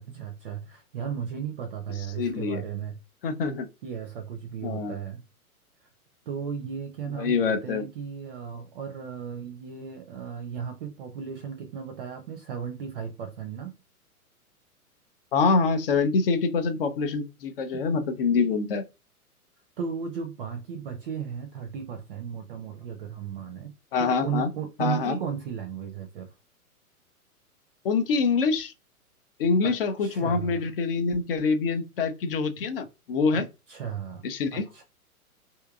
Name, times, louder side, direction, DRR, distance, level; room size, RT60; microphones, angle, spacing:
voice 1, 0.0-3.0 3.8-5.2 6.3-13.7 17.7-17.8 19.8-23.7 24.0-26.3 29.6-30.7 33.3-34.2 34.5-34.8, right 7 dB, 40° right, 0.6 m, -35 dB
voice 2, 2.2-2.6 3.2-3.7 4.6-5.0 7.2-7.8 15.3-18.8 23.9-24.5 24.8-25.2 27.8-28.7 29.4-33.4 34.2-34.6, left 4 dB, 40° left, 0.6 m, -25 dB
3.5 x 2.7 x 2.3 m
figure-of-eight pair, 110°, 45 cm